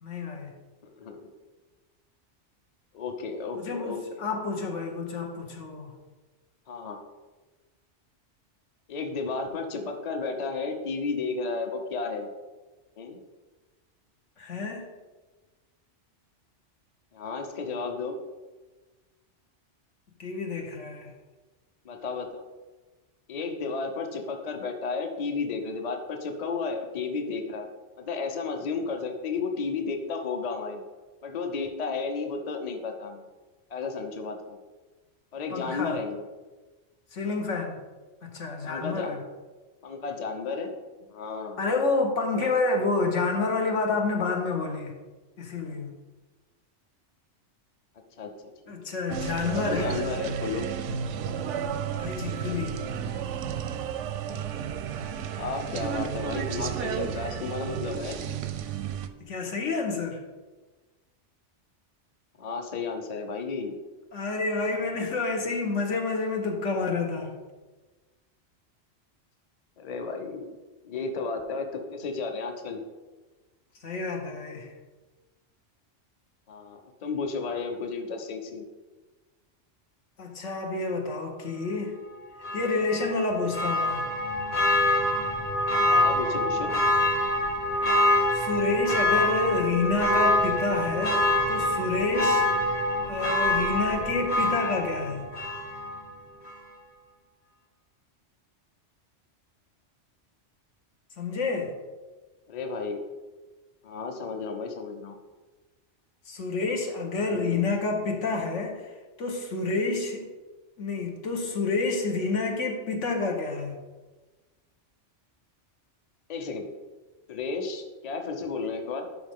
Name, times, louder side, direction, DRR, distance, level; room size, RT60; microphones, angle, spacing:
voice 1, 0.0-0.5 3.6-5.9 14.4-14.8 20.2-21.1 35.5-36.0 37.1-37.8 38.2-39.2 41.6-44.9 45.4-45.9 48.7-50.1 52.0-52.8 59.3-60.2 64.1-67.3 73.8-74.7 80.2-82.0 82.5-84.1 88.3-92.5 93.0-95.3 101.2-101.7 106.3-108.7 109.2-110.3 110.8-113.8, left 3 dB, 80° left, 2 dB, 1.6 m, -29 dB
voice 2, 0.8-1.3 2.9-4.2 6.7-7.0 8.9-12.3 13.0-13.2 17.1-18.2 21.8-22.4 23.3-27.7 28.0-30.8 31.2-33.3 33.7-34.6 35.3-36.2 38.6-39.2 39.8-40.7 41.1-41.6 48.2-48.3 48.7-49.0 49.4-50.6 55.3-58.2 62.4-63.7 69.8-70.6 70.8-72.8 76.5-78.7 85.9-86.7 102.5-103.0 103.8-105.2 107.2-107.6 116.3-116.7 117.3-119.1, left 4 dB, 40° left, 4 dB, 0.8 m, -33 dB
sound 1, 49.1-59.1, right 8 dB, 85° right, 0.9 m, -32 dB
Church bell, 82.4-96.1 96.5-96.6, left 1 dB, 60° left, 2.1 m, -25 dB
12.0 x 5.3 x 3.6 m, 1.3 s
omnidirectional pair, 1.2 m